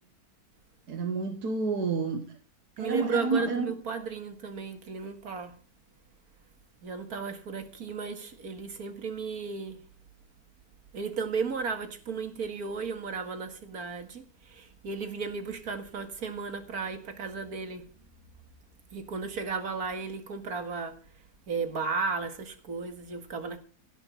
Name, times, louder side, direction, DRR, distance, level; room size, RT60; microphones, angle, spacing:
voice 1, 0.9-2.2 2.8-3.7, right 4 dB, 85° right, 2.0 m, -29 dB
voice 2, 2.8-5.5 6.8-9.8 10.9-17.8 18.9-21.0 21.5-23.6, right 5 dB, 70° right, 2.3 m, -34 dB
17.0 x 6.0 x 8.4 m
omnidirectional pair, 1.6 m